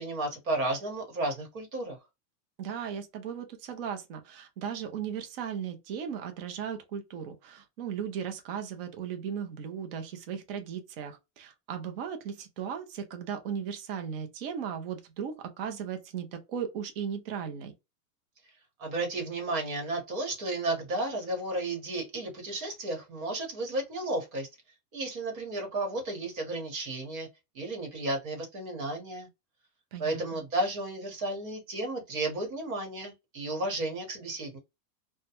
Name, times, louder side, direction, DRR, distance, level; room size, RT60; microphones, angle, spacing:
voice 1, 0.0-2.0 18.8-24.5 24.9-27.3 27.5-29.3 30.0-34.6, right 2 dB, 55° right, 1.2 m, -33 dB
voice 2, 2.6-17.7 29.9-30.4, right 7 dB, 40° right, 0.5 m, -37 dB
2.2 x 2.1 x 2.7 m
supercardioid pair, 165°, 48 cm